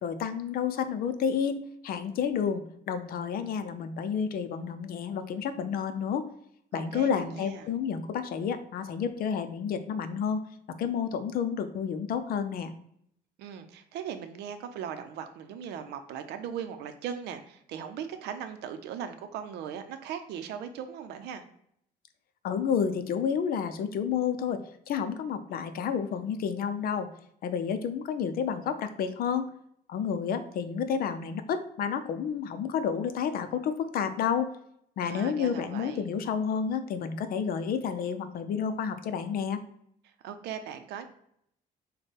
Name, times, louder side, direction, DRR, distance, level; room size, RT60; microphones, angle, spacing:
voice 1, 0.0-6.3 6.7-10.4 10.8-12.7 22.4-27.1 27.4-29.5 29.9-34.5 35.0-39.6, left 7 dB, 60° left, 10 dB, 0.6 m, -30 dB
voice 2, 6.7-7.7 13.4-21.4 35.0-36.1 40.2-41.1, right 8 dB, 80° right, 8 dB, 0.6 m, -39 dB
6.4 x 2.2 x 3.3 m, 0.70 s
cardioid pair, 110°, 17 cm